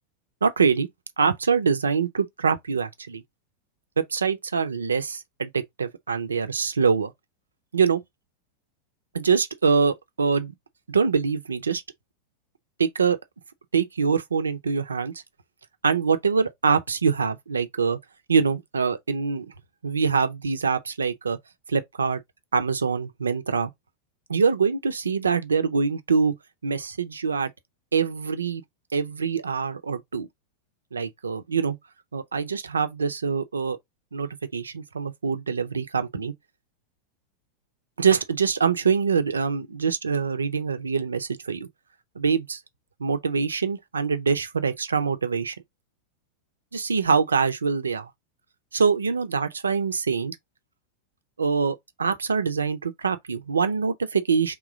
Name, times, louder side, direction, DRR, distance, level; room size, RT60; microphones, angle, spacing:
voice 1, 0.4-0.9 1.2-3.2 4.0-7.1 7.7-8.0 9.1-10.5 10.9-11.8 12.8-13.2 13.7-15.1 15.8-18.0 18.3-19.5 19.8-21.4 21.7-22.2 22.5-23.7 24.3-26.3 26.6-27.5 27.9-28.6 28.9-30.3 30.9-31.8 32.1-33.8 34.1-36.3 38.0-41.7 42.2-42.6 43.0-45.5 46.7-48.1 48.7-50.4 51.4-54.5, right 5 dB, 75° right, 0.6 m, -24 dB
3.8 x 3.0 x 3.6 m
figure-of-eight pair, 90°, 0 cm